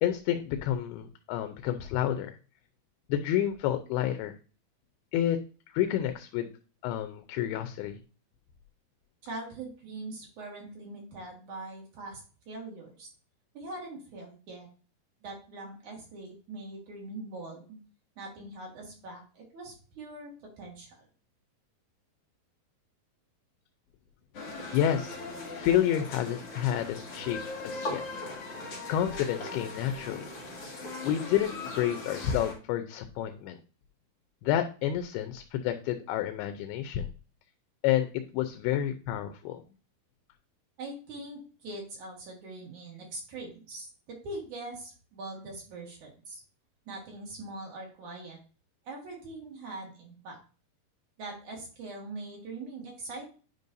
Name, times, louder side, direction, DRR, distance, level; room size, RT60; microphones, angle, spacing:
voice 1, 0.0-2.4 3.1-4.3 5.1-5.4 5.7-6.5 6.8-8.0 24.7-25.2 25.6-27.4 27.6-28.0 28.9-30.3 31.0-33.6 34.4-37.1 37.8-39.6, left 11 dB, 85° left, 7 dB, 2.6 m, -29 dB
voice 2, 9.2-13.1 13.5-14.7 15.2-17.8 18.2-21.1 40.8-46.4 46.9-48.4 48.9-50.4 51.2-53.3, right 2 dB, 55° right, -2 dB, 2.9 m, -42 dB
sound 1, 24.3-32.5, left 2 dB, 45° left, 2.3 m, -39 dB
9.7 x 5.3 x 2.6 m, 0.37 s
omnidirectional pair, 4.4 m